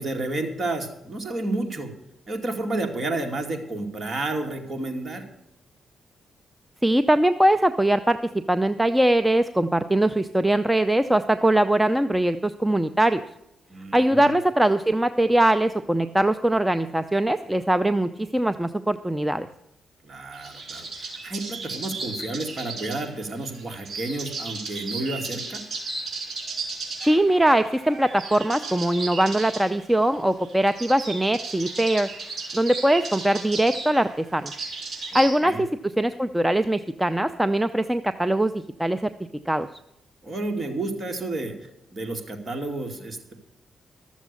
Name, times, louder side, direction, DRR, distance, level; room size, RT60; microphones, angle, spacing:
voice 1, 0.0-1.9 2.3-5.3 13.7-14.3 20.0-25.6 35.1-35.6 40.2-43.3, right 2 dB, 35° right, 3 dB, 2.4 m, -31 dB
voice 2, 6.8-8.2 8.5-13.2 13.9-19.5 27.0-32.1 32.5-34.5 35.1-39.1 39.5-39.7, right 1 dB, 5° right, 10 dB, 0.5 m, -21 dB
sound 1, 20.3-35.4, right 3 dB, 55° right, 4.4 m, -35 dB
13.0 x 7.3 x 8.3 m, 0.85 s
cardioid pair, 90°, 0 cm